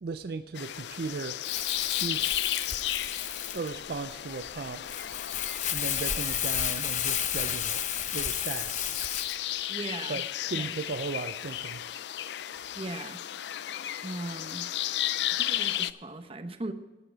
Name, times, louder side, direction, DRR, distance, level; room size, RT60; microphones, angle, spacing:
voice 1, 0.0-1.4 1.7-2.2 3.5-4.8 5.7-7.8 8.1-9.0 10.1-10.2 10.5-11.8, right 4 dB, 60° right, 10 dB, 0.4 m, -36 dB
sound 1, 0.5-15.9, left 12 dB, 80° left, 0.4 m, -34 dB
Crumpling crinkling, 1.4-9.4, left 10 dB, 40° left, 0.7 m, -32 dB
voice 2, 9.7-10.2 10.5-10.8 12.7-13.2 14.0-14.7 15.3-16.7, right 2 dB, 30° right, 9 dB, 0.8 m, -38 dB
13.0 x 9.1 x 5.0 m, 1.2 s
head